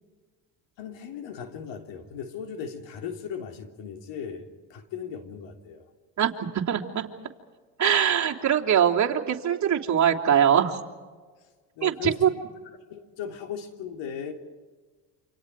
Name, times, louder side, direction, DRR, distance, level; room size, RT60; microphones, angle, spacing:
voice 1, 0.8-5.9 11.8-12.4 12.9-14.3, left 7 dB, 70° left, 4 dB, 3.6 m, -37 dB
voice 2, 6.2-7.1 7.8-10.8 11.8-12.3, right 9 dB, 40° right, -1 dB, 3.3 m, -22 dB
29.0 x 27.0 x 4.9 m, 1.4 s
supercardioid pair, 95°, 46 cm